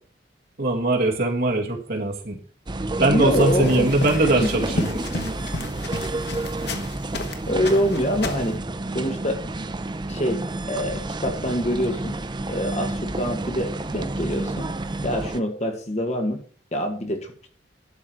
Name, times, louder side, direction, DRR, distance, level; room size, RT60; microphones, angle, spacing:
voice 1, 0.6-2.4 3.0-5.0, right 2 dB, 55° right, 0 dB, 2.2 m, -21 dB
sound 1, 2.7-15.4, right 2 dB, 25° right, 0.6 m, -30 dB
voice 2, 3.0-3.9 4.4-4.5 4.8-5.0 7.5-8.6 8.9-9.4 10.1-12.2 12.5-14.7 15.0-16.4 16.7-17.5, equal, 40° left, 4 dB, 1.9 m, -25 dB
sound 2, 3.3-7.4 7.6-8.5, left 2 dB, 65° left, 1.4 m, -32 dB
12.0 x 4.9 x 6.3 m, 0.44 s
head